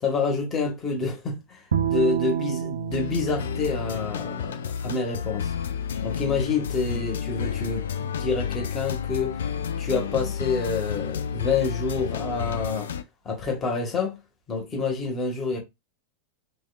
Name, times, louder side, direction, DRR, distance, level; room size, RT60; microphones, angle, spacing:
voice 1, 0.0-5.5 6.0-9.4 9.8-12.9 13.2-14.2 14.5-15.6, left 4 dB, 25° left, 1.4 m, -28 dB
Bowed string instrument, 1.7-5.0, right 8 dB, 65° right, 0.4 m, -30 dB
sound 1, 2.9-13.0, left 8 dB, 65° left, 0.4 m, -31 dB
3.4 x 3.3 x 2.4 m
figure-of-eight pair, 90°, 0 cm